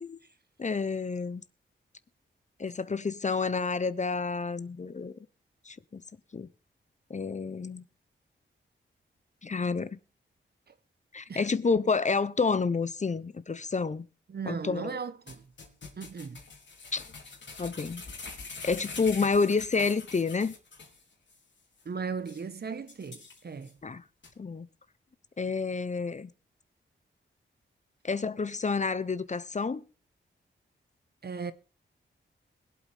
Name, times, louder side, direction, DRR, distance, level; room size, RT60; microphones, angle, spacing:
voice 1, 0.6-1.4 2.6-5.2 5.7-6.0 6.3-6.5 7.1-7.8 9.4-10.0 11.1-14.1 14.5-15.0 16.9-17.0 17.6-18.0 18.6-20.6 23.8-24.0 24.4-24.7 25.4-26.3 28.0-29.8, left 4 dB, 35° left, 0.8 m, -29 dB
voice 2, 14.3-15.4 16.0-16.4 21.8-23.7 31.2-31.5, right 5 dB, 50° right, 1.1 m, -37 dB
sound 1, 15.3-21.0 21.3-21.4 21.8-21.9 22.3-22.4 22.9-23.7 24.2-24.3, left 4 dB, 65° left, 3.5 m, -44 dB
21.5 x 8.3 x 3.5 m
cardioid pair, 65°, 20 cm